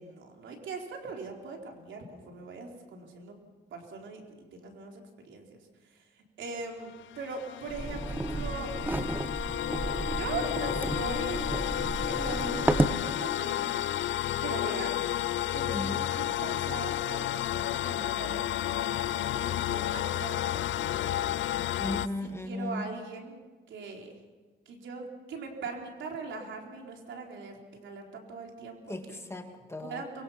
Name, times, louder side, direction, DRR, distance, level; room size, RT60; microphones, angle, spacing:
voice 1, 0.0-3.4 3.7-4.2 4.5-9.4 10.1-11.4 12.1-13.8 14.4-15.0 15.5-20.5 20.7-21.3 22.4-23.4 23.7-24.1 24.7-29.2 29.8-30.2, right 4 dB, 75° right, 1 dB, 4.3 m, -41 dB
sound 1, 6.8-22.1, left 13 dB, 75° left, 0.6 m, -31 dB
sound 2, 7.7-13.0, right 2 dB, 10° right, 1.0 m, -32 dB
voice 2, 15.7-16.1 21.8-22.8 28.9-30.0, left 1 dB, 15° left, 5 dB, 2.3 m, -36 dB
24.0 x 23.0 x 5.9 m, 1.3 s
cardioid pair, 90°, 20 cm